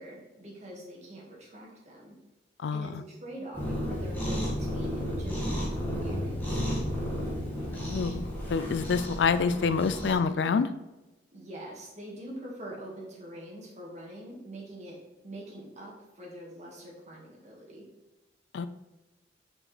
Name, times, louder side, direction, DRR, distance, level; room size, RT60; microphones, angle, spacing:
voice 1, 0.0-2.2 2.7-6.7 11.3-15.0 15.2-17.9, right 1 dB, 40° right, -3 dB, 1.8 m, -44 dB
voice 2, 2.6-3.0 7.7-10.7 18.5-18.7, left 5 dB, 75° left, 12 dB, 0.4 m, -27 dB
Cat, 3.5-10.1, equal, 10° left, 1.7 m, -32 dB
6.1 x 5.0 x 3.3 m, 1.1 s
head